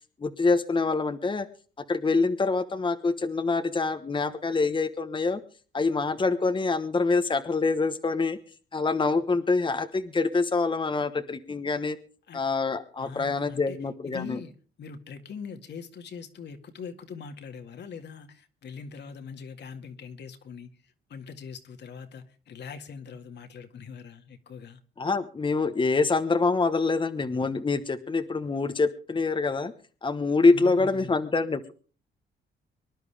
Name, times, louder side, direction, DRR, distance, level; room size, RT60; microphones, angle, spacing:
voice 1, 0.2-1.5 1.9-5.4 5.7-8.4 8.7-12.0 12.3-14.4 25.0-29.7 30.0-31.7, left 3 dB, 25° left, 1.2 m, -25 dB
voice 2, 13.0-24.8 30.5-31.2, left 6 dB, 60° left, 2.1 m, -42 dB
25.0 x 11.0 x 3.5 m
cardioid pair, 90°, 20 cm